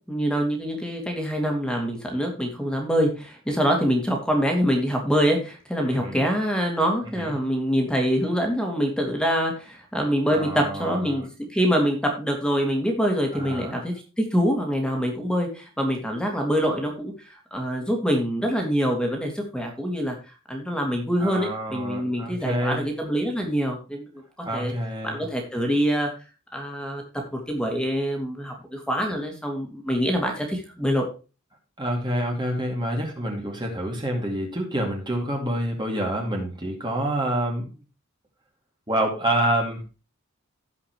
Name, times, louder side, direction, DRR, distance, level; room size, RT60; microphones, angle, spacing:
voice 1, 0.1-17.1 17.5-20.2 20.5-24.1 24.4-24.7 25.0-26.1 26.5-31.0, equal, 5° left, 2 dB, 2.6 m, -25 dB
voice 2, 5.8-6.2 7.0-7.3 10.3-11.2 13.3-13.8 21.2-22.8 24.4-25.2 31.8-37.7 38.9-39.8, right 1 dB, 20° right, 0 dB, 2.4 m, -27 dB
17.0 x 5.8 x 3.1 m, 0.31 s
head